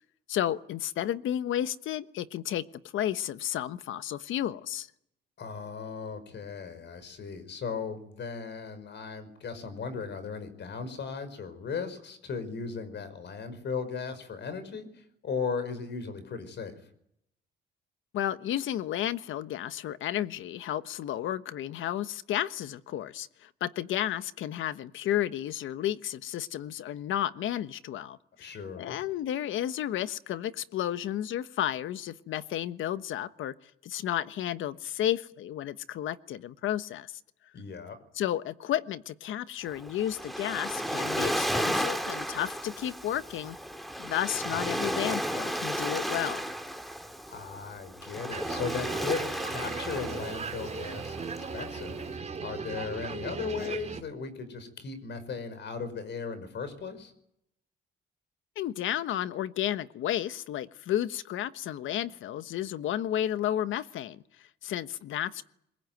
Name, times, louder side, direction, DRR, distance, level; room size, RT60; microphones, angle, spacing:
voice 1, 0.3-2.6 2.9-4.9 18.1-37.1 38.1-43.6 44.0-46.5 58.6-65.4, left 11 dB, 80° left, 13 dB, 1.2 m, -32 dB
voice 2, 5.4-16.7 28.4-29.0 37.5-38.0 47.3-52.0 52.4-57.1, left 5 dB, 60° left, 11 dB, 5.5 m, -37 dB
Waves surf, 39.7-52.1, equal, ahead, 2.5 m, -34 dB
sound 1, 48.3-54.0, right 5 dB, 35° right, 3.2 m, -37 dB
22.5 x 22.0 x 9.3 m, 0.73 s
cardioid pair, 90°, 20 cm